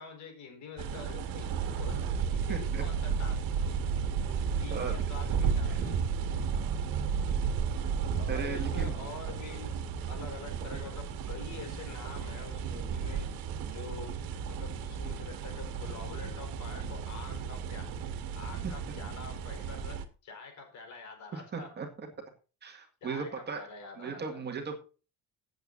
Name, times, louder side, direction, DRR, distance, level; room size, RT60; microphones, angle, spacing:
voice 1, 0.0-3.5 4.2-6.1 8.1-17.9 18.3-21.7 23.0-24.4, left 5 dB, 50° left, 5 dB, 4.4 m, -46 dB
sound 1, 0.8-20.0, right 6 dB, 70° right, 1.8 m, -33 dB
voice 2, 2.5-2.8 4.7-5.0 5.7-5.8 8.3-8.9 18.6-18.7 21.3-21.9 22.6-23.7 24.0-24.8, right 5 dB, 30° right, 4 dB, 1.9 m, -37 dB
17.0 x 8.1 x 2.6 m, 0.34 s
cardioid pair, 180°, 36 cm